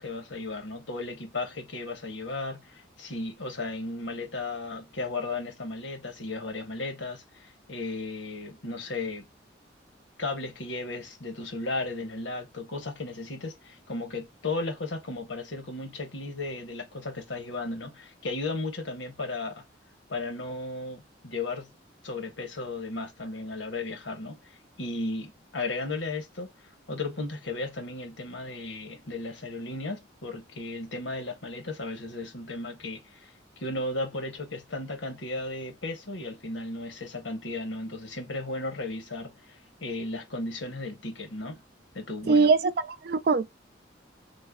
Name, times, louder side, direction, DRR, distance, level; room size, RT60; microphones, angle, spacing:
voice 1, 0.0-9.3 10.2-19.6 20.1-21.7 22.0-26.5 26.9-33.3 33.6-41.6 41.9-42.5, left 2 dB, 90° left, 1.2 m, -35 dB
voice 2, 42.3-43.5, right 4 dB, 55° right, 0.4 m, -22 dB
3.3 x 2.2 x 3.5 m
head